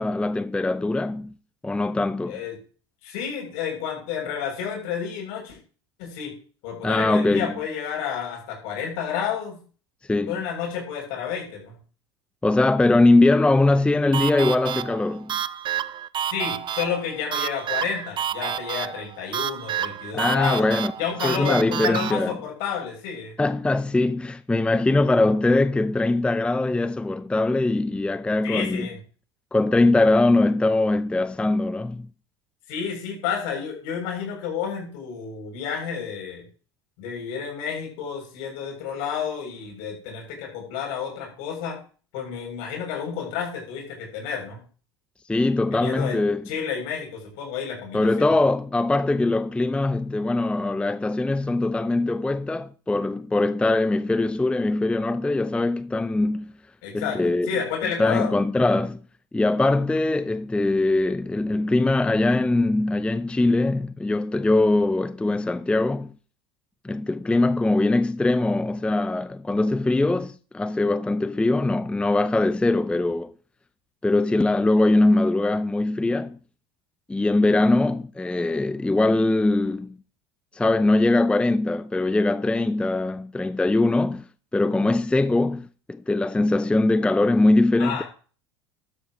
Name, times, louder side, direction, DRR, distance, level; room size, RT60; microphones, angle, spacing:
voice 1, 0.0-1.3 1.6-2.4 6.8-7.5 10.1-10.4 12.4-15.4 20.1-20.9 21.2-22.3 23.4-28.9 29.5-32.1 45.3-46.4 47.9-56.5 56.9-57.5 58.0-59.0 59.3-66.1 66.8-73.3 74.0-76.4 77.1-79.9 80.5-84.2 84.5-88.0, left 2 dB, 5° left, 0.6 m, -22 dB
voice 2, 3.0-5.6 6.0-6.3 6.6-9.6 10.3-11.8 16.3-20.7 21.0-23.3 28.4-29.0 32.7-36.4 37.0-41.8 42.1-44.6 45.7-46.2 46.5-48.3 56.8-58.3 87.8-88.0, left 7 dB, 65° left, 7.1 m, -30 dB
sound 1, 14.1-22.1, right 10 dB, 35° right, 0.7 m, -29 dB
13.5 x 12.5 x 3.1 m
hypercardioid pair, 80°, 14 cm